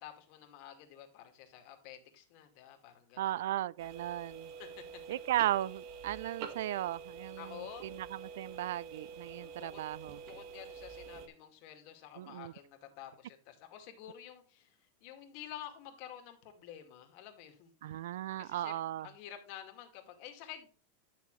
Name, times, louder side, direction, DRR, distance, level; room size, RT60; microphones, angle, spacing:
voice 1, 0.0-3.3 4.6-5.0 7.4-7.9 9.2-9.8 10.2-18.0 18.4-18.7 19.0-20.7, left 10 dB, 45° left, 2.3 m, -50 dB
voice 2, 3.2-4.5 5.1-10.2 12.2-12.5 17.8-19.1, right 13 dB, 75° right, 0.4 m, -36 dB
sound 1, 3.8-11.3, right 6 dB, 45° right, 1.8 m, -47 dB
11.0 x 6.5 x 3.2 m
supercardioid pair, 155°, 0 cm